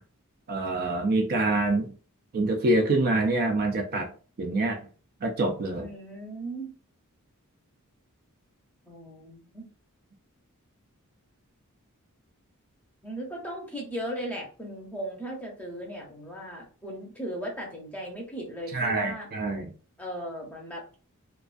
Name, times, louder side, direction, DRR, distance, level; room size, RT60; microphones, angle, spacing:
voice 1, 0.5-1.9 2.3-4.1 4.4-4.8 5.2-5.9 18.7-19.7, right 2 dB, 45° right, 4 dB, 0.4 m, -26 dB
voice 2, 5.8-6.7 8.9-9.7 13.0-19.3 20.0-20.8, right 1 dB, 5° left, -1 dB, 0.6 m, -37 dB
2.4 x 2.3 x 2.4 m, 0.38 s
head